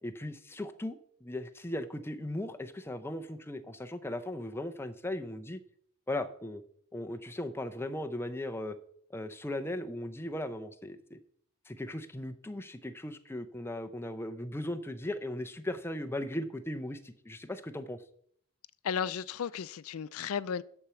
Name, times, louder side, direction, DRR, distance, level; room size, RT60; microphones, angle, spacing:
voice 1, 0.0-5.6 6.1-6.6 6.9-8.8 9.1-11.2 11.7-18.0, left 1 dB, 10° left, 0.5 m, -37 dB
voice 2, 18.8-20.6, left 7 dB, 80° left, 0.4 m, -34 dB
11.5 x 4.4 x 6.9 m
head